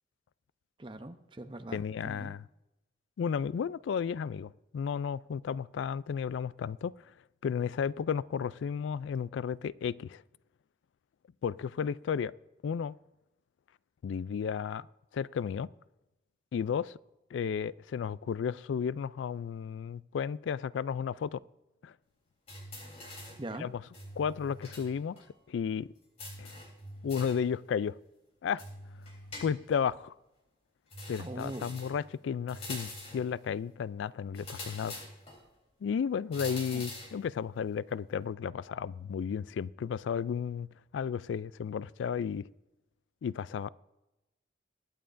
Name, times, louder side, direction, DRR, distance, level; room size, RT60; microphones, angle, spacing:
voice 1, 0.8-2.3 23.4-23.7 31.2-31.7 36.7-36.8, right 1 dB, 25° right, 0.7 m, -42 dB
voice 2, 1.7-2.4 3.2-6.9 7.4-10.2 11.4-12.3 12.6-12.9 14.0-14.9 15.1-15.7 16.5-16.9 17.3-21.4 21.8-21.9 23.6-23.8 24.2-25.2 25.5-25.9 26.4-26.5 27.0-28.0 28.4-28.6 29.4-30.1 31.1-35.0 35.8-40.7 40.9-42.5 43.2-43.7, left 7 dB, 80° left, 0.3 m, -33 dB
sound 1, 22.5-23.5 23.9-24.9 25.2-25.3 26.2-27.5 28.6-29.8 30.9-32.0 32.5-33.3 34.3-35.4 36.3-37.2, left 2 dB, 35° left, 3.5 m, -44 dB
22.0 x 9.2 x 2.6 m
head